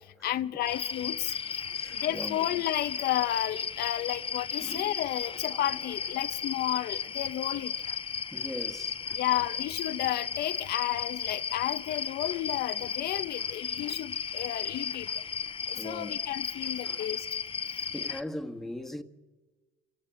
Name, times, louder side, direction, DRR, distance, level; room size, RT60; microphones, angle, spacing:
voice 1, 0.0-1.3 1.9-7.7 9.1-15.1 15.7-17.3, left 13 dB, 65° left, 0.7 m, -32 dB
sound 1, 0.7-18.2, left 7 dB, 35° left, 1.0 m, -35 dB
voice 2, 1.6-2.5 4.6-4.9 8.3-9.0 15.8-16.2 16.8-17.0 17.7-19.0, left 1 dB, ahead, 1.6 m, -40 dB
28.5 x 18.0 x 8.9 m
cardioid pair, 110°, 17 cm